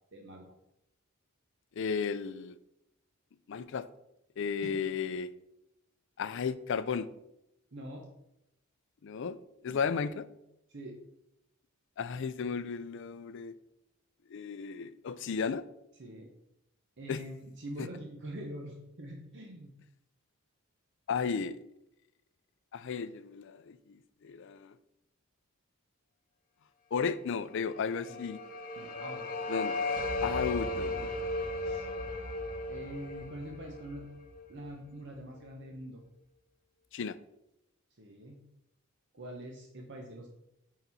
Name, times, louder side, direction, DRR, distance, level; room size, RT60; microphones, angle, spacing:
voice 1, 0.1-0.5 4.6-4.8 7.7-8.1 9.6-9.9 10.7-11.0 16.0-16.3 17.0-19.7 28.0-28.2 28.7-29.2 30.2-31.1 31.6-31.9 32.7-34.1 34.5-36.0 38.0-38.4 39.1-40.3, right 1 dB, 55° right, 1 dB, 0.9 m, -44 dB
voice 2, 1.8-2.6 3.5-3.9 4.4-5.3 6.2-7.1 9.0-9.4 9.6-10.3 12.0-13.6 14.3-15.6 17.1-17.2 21.1-21.6 22.7-24.7 26.9-28.4 29.5-29.8 30.2-31.1 36.9-37.2, left 6 dB, 55° left, 14 dB, 0.4 m, -34 dB
sound 1, 27.7-34.7, left 2 dB, 40° left, 0.9 m, -36 dB
9.0 x 4.0 x 4.1 m, 0.83 s
head